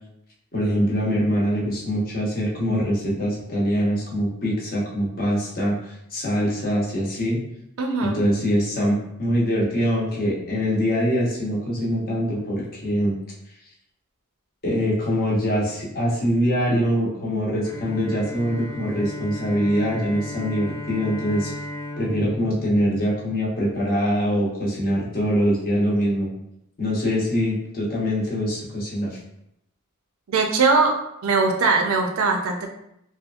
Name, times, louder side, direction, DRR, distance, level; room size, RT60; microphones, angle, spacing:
voice 1, 0.5-7.4 8.0-13.2 14.6-21.5 22.0-26.3 26.8-29.2, equal, 45° left, -4 dB, 0.8 m, -23 dB
voice 2, 7.8-8.2 30.3-30.9 31.2-32.7, right 4 dB, 75° right, 3 dB, 0.4 m, -20 dB
Bowed string instrument, 17.6-23.8, left 1 dB, 15° left, 0.3 m, -36 dB
2.8 x 2.3 x 2.4 m, 0.78 s
head